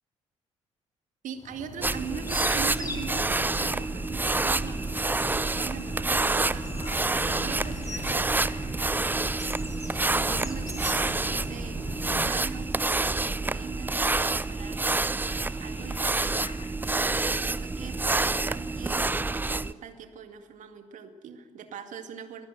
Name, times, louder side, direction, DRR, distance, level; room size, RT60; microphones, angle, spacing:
voice 1, 1.2-4.9 5.6-6.7 7.0-8.9 10.1-14.8 15.6-22.5, right 6 dB, 50° right, 8 dB, 2.0 m, -42 dB
sound 1, 1.4-12.2, left 2 dB, 20° left, 3.2 m, -40 dB
sound 2, 1.7-16.7, left 6 dB, 45° left, 2.2 m, -50 dB
sound 3, 1.8-19.7, right 3 dB, 10° right, 0.6 m, -28 dB
23.0 x 15.5 x 9.2 m, 1.3 s
figure-of-eight pair, 45°, 16 cm